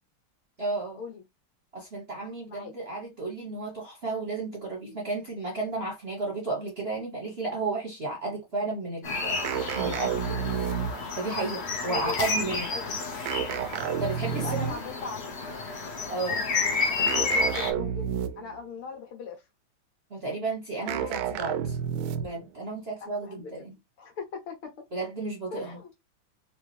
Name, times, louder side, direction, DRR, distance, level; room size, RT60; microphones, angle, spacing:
voice 1, 0.6-1.0 1.7-10.5 11.2-12.7 14.0-14.7 16.1-16.4 20.1-21.8 22.2-23.7 24.9-25.8, right 3 dB, 40° right, 1.0 m, -33 dB
sound 1, 9.0-17.7, left 4 dB, 55° left, 0.7 m, -31 dB
sound 2, 9.4-11.2 13.3-14.9 17.1-18.6 20.9-22.5, right 8 dB, 75° right, 1.3 m, -30 dB
voice 2, 11.9-12.2 12.7-12.9 14.3-15.3 16.3-19.4 20.9-21.2 23.0-23.6 24.0-24.7 25.5-25.9, left 5 dB, 80° left, 2.3 m, -40 dB
4.5 x 2.7 x 3.2 m
omnidirectional pair, 2.4 m